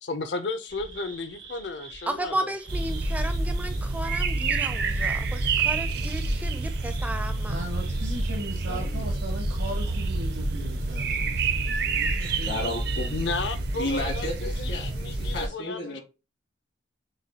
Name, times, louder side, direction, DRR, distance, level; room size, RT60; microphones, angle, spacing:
voice 1, 0.0-2.5 5.0-5.1 13.1-16.0, left 3 dB, 65° left, 0.6 m, -33 dB
sound 1, 0.7-12.8, right 2 dB, 90° right, 2.1 m, -49 dB
voice 2, 2.1-7.6, right 1 dB, 10° right, 0.4 m, -34 dB
sound 2, 2.7-15.5, right 3 dB, 55° right, 0.5 m, -28 dB
voice 3, 7.5-12.7, right 1 dB, 75° right, 1.0 m, -38 dB
voice 4, 8.6-9.1 11.9-13.1 13.7-16.0, left 1 dB, 80° left, 2.1 m, -34 dB
6.2 x 2.3 x 2.8 m
head